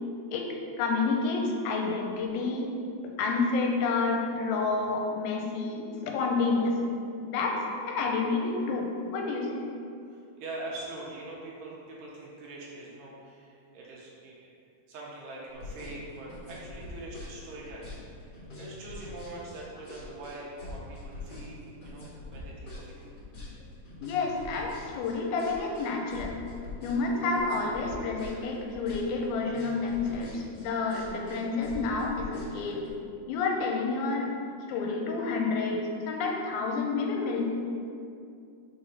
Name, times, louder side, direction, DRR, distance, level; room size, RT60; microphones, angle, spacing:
voice 1, 0.3-2.7 3.2-6.8 7.2-9.6 24.0-26.4 26.8-32.9 33.3-34.3 34.7-37.4, left 3 dB, 85° left, 1 dB, 2.4 m, -29 dB
voice 2, 10.1-14.5 14.9-18.3 18.6-23.1, right 2 dB, 75° right, -4 dB, 2.2 m, -43 dB
sound 1, 15.5-32.9, left 2 dB, 60° left, 1.1 m, -43 dB
5.6 x 4.6 x 5.3 m, 2.5 s
omnidirectional pair, 4.4 m